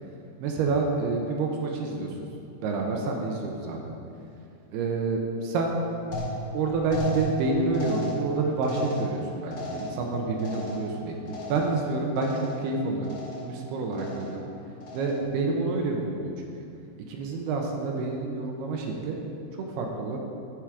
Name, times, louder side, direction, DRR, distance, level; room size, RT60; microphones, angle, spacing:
voice 1, 0.4-2.1 2.6-3.9 4.7-5.8 6.5-14.5 14.9-16.5 17.1-19.2 19.5-20.2, right 3 dB, 75° right, 1 dB, 2.7 m, -28 dB
sound 1, 6.1-11.9 12.2-12.7 13.0-13.6 13.9-14.4 14.8-15.4, equal, 45° left, 2.2 m, -36 dB
13.5 x 6.2 x 4.9 m, 2.6 s
omnidirectional pair, 5.0 m